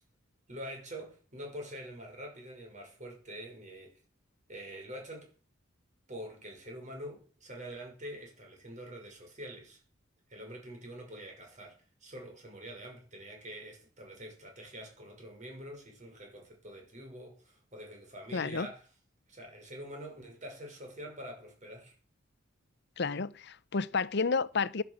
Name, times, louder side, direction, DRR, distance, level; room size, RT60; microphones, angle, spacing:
voice 1, 0.5-4.0 4.5-5.3 6.1-9.8 10.3-18.9 19.3-22.0, equal, 35° right, 6.1 m, -45 dB
voice 2, 18.3-18.7 23.0-24.8, left 4 dB, 55° left, 0.7 m, -31 dB
15.0 x 11.0 x 6.5 m
head